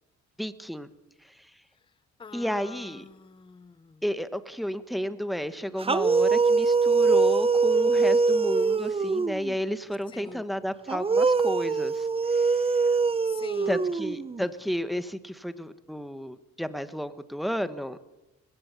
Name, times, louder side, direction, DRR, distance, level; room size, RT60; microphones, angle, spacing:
voice 1, 0.4-0.9 2.3-3.0 4.0-12.6 13.7-18.0, equal, ahead, 1.4 m, -32 dB
voice 2, 2.2-4.0 10.1-10.4 13.2-13.8, left 5 dB, 15° left, 0.6 m, -44 dB
sound 1, 5.8-9.5 10.9-14.5, right 4 dB, 20° right, 0.7 m, -23 dB
20.5 x 16.0 x 8.4 m
cardioid pair, 90°, 30 cm